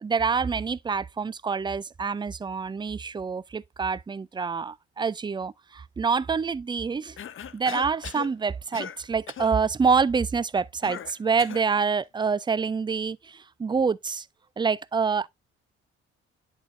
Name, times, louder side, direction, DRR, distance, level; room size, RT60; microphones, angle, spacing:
voice 1, 0.0-7.2 7.5-14.3 14.6-15.3, right 5 dB, 15° right, 0.4 m, -26 dB
Cough, 7.2-8.3 8.7-9.0 9.3-9.5 10.8-11.7, left 9 dB, 40° left, 0.7 m, -38 dB
10.5 x 4.7 x 2.6 m
hypercardioid pair, 45°, 31 cm